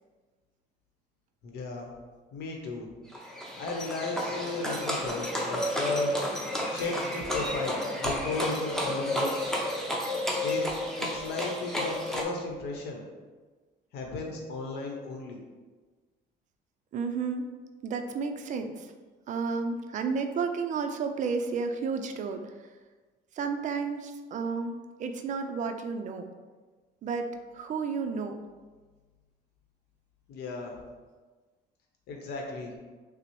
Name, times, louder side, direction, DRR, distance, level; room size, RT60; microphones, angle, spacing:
voice 1, 1.4-1.9 2.3-2.9 3.4-6.2 6.7-9.4 10.4-13.0 13.9-15.4 30.3-30.7 32.1-32.7, left 3 dB, 75° left, 1 dB, 0.8 m, -35 dB
Livestock farm animals working animals, 3.1-12.2, left 1 dB, 5° left, 0.6 m, -31 dB
voice 2, 16.9-17.5 17.8-18.9 19.3-22.8 23.3-26.3 27.0-28.4, right 5 dB, 45° right, 6 dB, 0.4 m, -32 dB
5.8 x 2.0 x 3.0 m, 1.3 s
cardioid pair, 110°, 17 cm